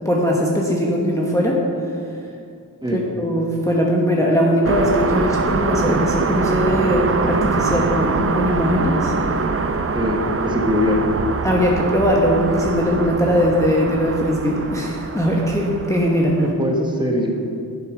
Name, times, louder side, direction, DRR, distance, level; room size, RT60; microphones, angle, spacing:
voice 1, 0.0-1.6 2.9-9.1 11.4-16.4, equal, 10° left, -3 dB, 1.1 m, -20 dB
sound 1, 4.6-16.5, right 4 dB, 35° right, 0.6 m, -23 dB
voice 2, 9.9-11.0 16.4-17.4, left 1 dB, 10° right, -1 dB, 1.3 m, -22 dB
10.5 x 7.7 x 5.0 m, 2.4 s
wide cardioid pair, 105°, 39 cm